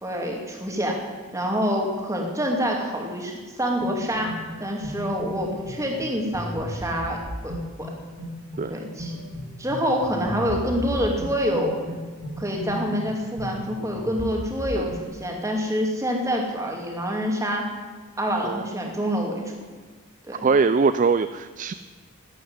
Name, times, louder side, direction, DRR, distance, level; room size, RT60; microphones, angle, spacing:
voice 1, 0.0-1.0 1.3-7.2 7.4-7.9 8.7-9.2 9.6-11.8 12.4-17.7 18.2-19.5 20.3-20.5, equal, 15° right, 1 dB, 2.5 m, -26 dB
sound 1, 3.8-15.1, equal, 70° right, 6.1 m, -35 dB
voice 2, 20.4-21.7, right 4 dB, 35° right, 12 dB, 0.3 m, -22 dB
12.5 x 10.0 x 9.6 m, 1.4 s
head